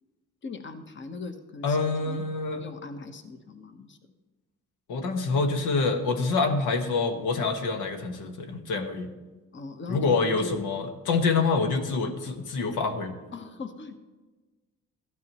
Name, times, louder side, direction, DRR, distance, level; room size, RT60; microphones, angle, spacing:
voice 1, 0.4-1.8 2.0-2.2 2.5-4.0 9.5-10.7 13.3-14.0, left 3 dB, 40° left, 8 dB, 1.2 m, -39 dB
voice 2, 1.6-2.6 4.9-9.1 9.9-13.1, left 4 dB, 85° left, 5 dB, 1.5 m, -26 dB
15.0 x 12.0 x 3.0 m, 1.2 s
cardioid pair, 90°, 30 cm